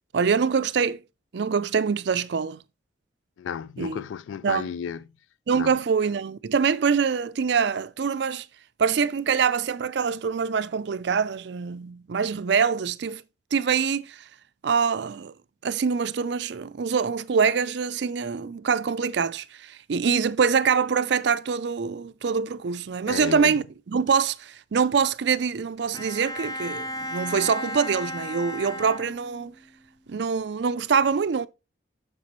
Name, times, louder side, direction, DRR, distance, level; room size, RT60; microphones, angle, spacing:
voice 1, 0.1-1.0 1.3-2.6 3.8-4.0 4.4-4.7 5.5-8.5 8.8-13.2 13.5-14.3 14.6-15.3 15.6-29.5 30.1-31.5, right 6 dB, 60° right, 0.4 m, -24 dB
voice 2, 3.4-5.0 5.5-5.7 23.1-23.6, left 7 dB, 80° left, 0.3 m, -33 dB
Bowed string instrument, 25.9-29.6, equal, 20° left, 0.5 m, -34 dB
7.1 x 6.7 x 3.0 m
head